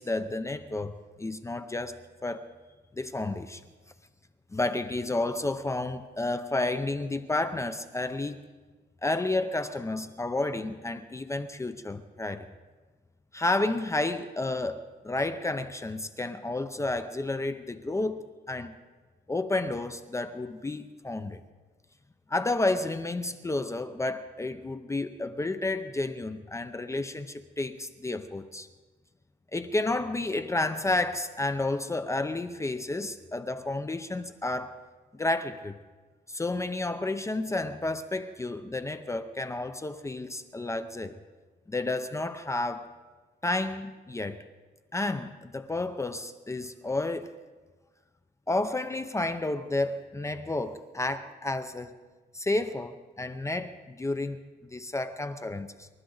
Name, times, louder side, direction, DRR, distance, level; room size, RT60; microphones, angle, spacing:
voice 1, 0.0-2.4 3.0-3.6 4.5-8.4 9.0-12.5 13.3-18.7 19.3-21.4 22.3-28.7 29.5-34.8 35.1-35.7 36.3-41.2 41.7-42.9 43.4-44.4 44.9-47.3 48.5-52.0 52.3-54.4 54.7-55.9, left 2 dB, 15° left, 0.6 m, -31 dB
28.0 x 12.5 x 4.0 m
cardioid pair, 130°, 18 cm